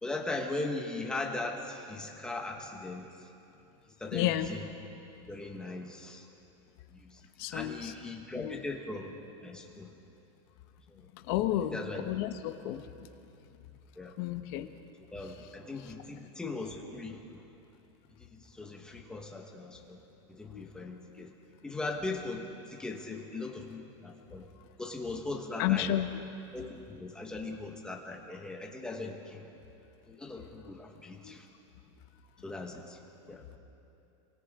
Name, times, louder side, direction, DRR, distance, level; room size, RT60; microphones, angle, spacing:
voice 1, 0.0-3.1 4.0-4.7 5.3-6.3 6.9-7.2 7.5-9.1 9.4-9.9 11.7-12.0 14.0-14.1 15.1-17.2 18.3-20.0 20.3-21.3 21.6-24.5 24.8-25.9 26.5-29.5 30.1-31.4 32.4-33.0 33.3-33.4, left 2 dB, 5° left, 1 dB, 1.5 m, -39 dB
voice 2, 4.1-4.5 7.4-7.9 8.4-8.6 11.3-11.8 12.0-12.9 14.2-14.7 20.5-20.6 25.6-26.1 31.2-31.4, left 13 dB, 50° left, 7 dB, 1.3 m, -31 dB
30.0 x 24.5 x 3.8 m, 2.7 s
supercardioid pair, 175°, 16 cm